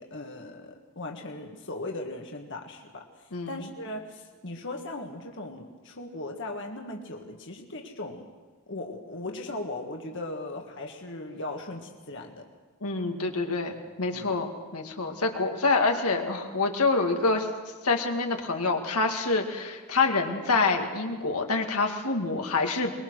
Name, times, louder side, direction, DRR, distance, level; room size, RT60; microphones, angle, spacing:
voice 1, 0.0-8.3 8.7-12.5 14.1-14.3, left 2 dB, 55° left, 2 dB, 1.7 m, -38 dB
voice 2, 12.8-17.5 17.8-22.9, left 3 dB, 85° left, 3 dB, 2.2 m, -26 dB
23.0 x 22.0 x 6.4 m, 1.5 s
head